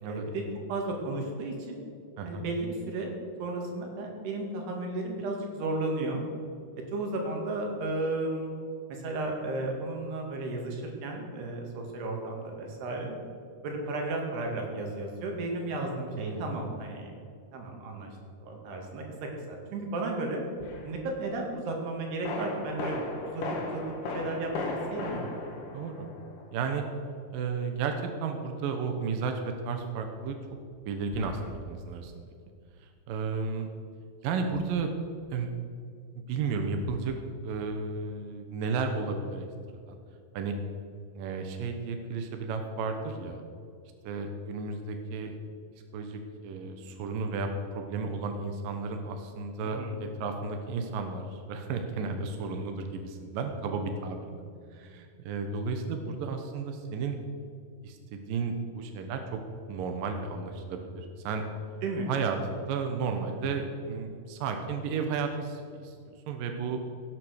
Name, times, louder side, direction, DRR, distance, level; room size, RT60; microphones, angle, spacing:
voice 1, 0.0-0.4 0.7-1.8 2.2-3.1 3.4-6.3 6.9-8.5 8.9-13.2 13.6-17.1 17.5-18.1 18.4-20.4 20.8-23.0 23.2-23.8 24.1-25.4 49.6-50.0 61.8-62.1, right 2 dB, 85° right, 1 dB, 4.3 m, -34 dB
voice 2, 16.2-16.5 25.7-26.1 26.5-26.8 27.3-28.0 28.2-30.4 30.9-32.3 32.8-33.7 34.2-34.9 35.3-35.5 36.2-37.2 37.4-39.5 39.9-40.0 40.3-40.5 41.2-43.4 44.0-45.3 45.9-54.4 54.7-57.2 57.8-59.4 59.7-61.4 62.1-66.8, right 4 dB, 70° right, 5 dB, 2.6 m, -33 dB
sound 1, 20.6-20.9 22.2-26.7 31.1-31.5, left 3 dB, 60° left, 3.3 m, -37 dB
17.0 x 9.3 x 6.5 m, 2.3 s
omnidirectional pair, 4.5 m